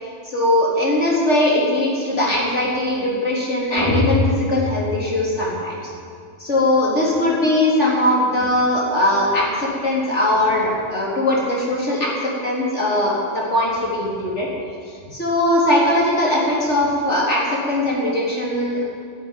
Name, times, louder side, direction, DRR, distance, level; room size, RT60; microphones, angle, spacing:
voice 1, 0.3-5.8 6.4-12.1 12.4-14.5 15.1-18.8, left 1 dB, 70° left, -5 dB, 4.4 m, -20 dB
sound 1, 3.8-5.9, left 2 dB, 25° left, 2.5 m, -23 dB
12.5 x 11.0 x 9.4 m, 2.3 s
omnidirectional pair, 1.2 m